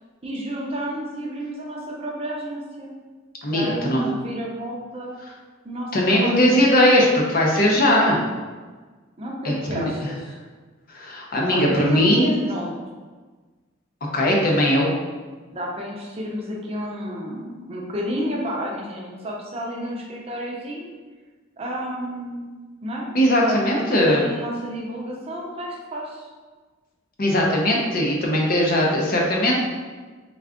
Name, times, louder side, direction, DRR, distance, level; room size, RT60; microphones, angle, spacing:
voice 1, 0.2-2.9 3.5-5.1 5.6-6.4 9.2-10.4 11.5-12.7 15.5-20.9 21.6-22.5 22.8-23.1 23.4-26.3, equal, 30° right, -2 dB, 0.5 m, -31 dB
voice 2, 3.4-4.1 5.9-8.2 9.4-9.9 10.9-12.3 14.1-14.9 23.1-24.3 27.2-29.6, left 1 dB, 45° left, -2 dB, 0.6 m, -19 dB
3.5 x 2.3 x 3.5 m, 1.4 s
head